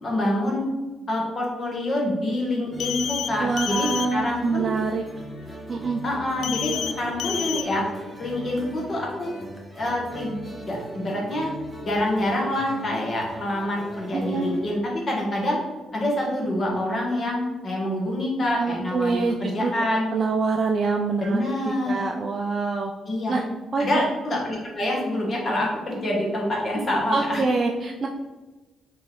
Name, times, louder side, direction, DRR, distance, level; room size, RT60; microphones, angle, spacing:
voice 1, 0.0-0.7 1.1-4.7 6.0-7.8 8.2-9.3 9.7-11.5 11.8-15.6 15.9-20.1 21.2-22.0 23.1-23.3 23.8-27.4, left 1 dB, 40° left, -2 dB, 1.4 m, -26 dB
sound 1, 2.7-14.8, right 1 dB, 5° left, 1.1 m, -40 dB
sound 2, 2.8-3.3 3.6-4.1 6.4-6.9 7.2-7.6, left 9 dB, 80° left, 0.3 m, -29 dB
voice 2, 3.4-5.0 5.7-6.0 14.1-14.5 18.6-19.7 20.1-21.4 21.8-22.9 23.3-23.4 23.7-24.0 27.1-28.1, right 4 dB, 40° right, 1 dB, 0.4 m, -25 dB
4.0 x 3.2 x 3.6 m, 1.2 s
cardioid pair, 90°, 0 cm